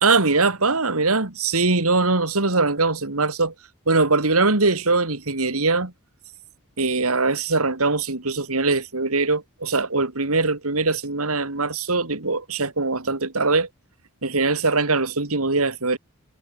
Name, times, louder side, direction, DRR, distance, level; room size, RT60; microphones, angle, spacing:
voice 1, 0.0-3.5 3.9-5.9 6.8-13.7 14.2-16.0, right 3 dB, 75° right, 2.6 m, -22 dB
head